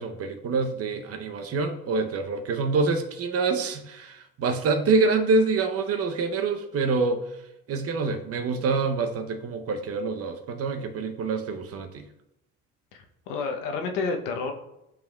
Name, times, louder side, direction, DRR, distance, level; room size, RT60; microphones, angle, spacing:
voice 1, 0.0-7.2 7.7-12.1, right 4 dB, 45° right, 6 dB, 0.9 m, -26 dB
voice 2, 12.9-14.5, left 4 dB, 80° left, 4 dB, 1.0 m, -30 dB
11.0 x 3.7 x 2.4 m, 0.88 s
supercardioid pair, 85°, 32 cm